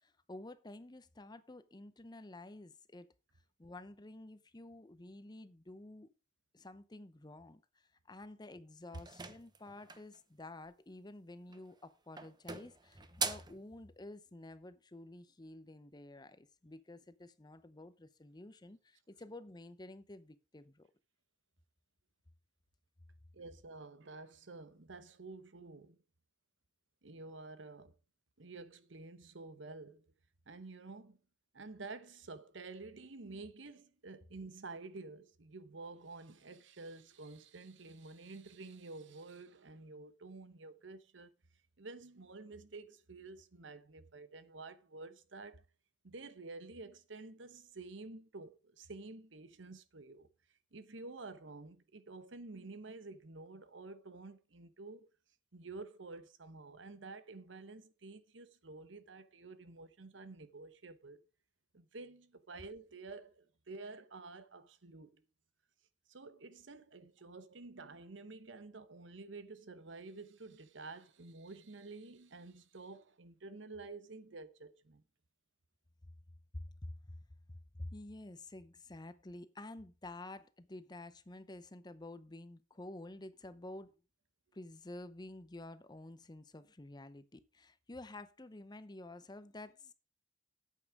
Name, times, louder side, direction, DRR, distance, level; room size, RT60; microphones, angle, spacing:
voice 1, 0.0-3.1 3.6-6.1 6.5-20.9 76.5-77.2 77.8-83.9 84.5-89.9, left 2 dB, 20° left, 0.7 m, -50 dB
sound 1, 8.9-10.2 11.4-11.8 12.2-13.6, right 5 dB, 25° right, 0.9 m, -41 dB
voice 2, 23.3-26.0 27.0-28.0 28.4-30.1 30.5-31.2 31.5-41.3 41.8-45.6 46.0-50.3 50.7-55.1 55.5-61.2 61.7-65.2 66.1-75.0, right 3 dB, 80° right, 1.0 m, -50 dB
8.7 x 8.5 x 4.8 m
head